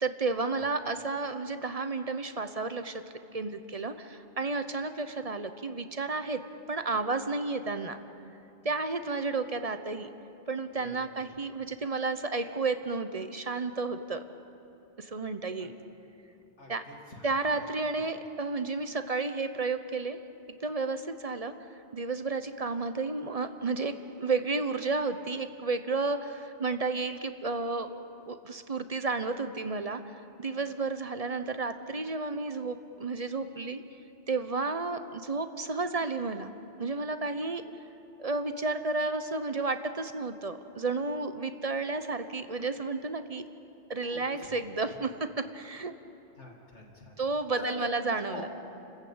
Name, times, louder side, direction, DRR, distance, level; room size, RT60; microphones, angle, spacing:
voice 1, 0.0-3.0 3.3-6.4 6.7-8.0 8.6-10.1 10.5-14.2 15.0-15.8 16.7-16.8 17.2-20.2 20.6-21.5 21.9-27.9 28.3-33.8 34.3-36.5 36.8-37.6 38.2-43.4 43.9-45.9 47.2-48.5, right 3 dB, 35° right, 9 dB, 0.9 m, -32 dB
voice 2, 16.6-17.7 18.0-18.1 44.0-44.6 44.9-45.0 46.3-47.2 47.6-48.5, left 1 dB, 75° left, 0 dB, 2.8 m, -44 dB
29.0 x 14.5 x 8.8 m, 2.8 s
omnidirectional pair, 1.2 m